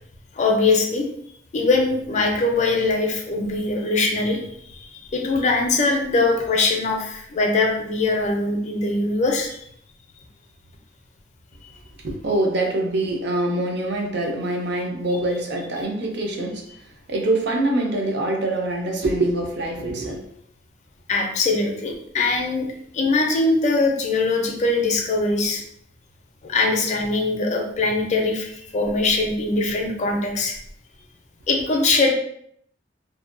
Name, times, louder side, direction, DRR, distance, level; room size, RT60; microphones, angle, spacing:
voice 1, 0.3-1.1 1.5-9.7 21.1-25.6 26.4-30.5 31.5-32.1, left 3 dB, 40° left, 1 dB, 0.4 m, -22 dB
voice 2, 12.0-16.6 17.1-20.2, right 1 dB, 65° right, 1 dB, 0.5 m, -24 dB
2.6 x 2.1 x 2.4 m, 0.70 s
head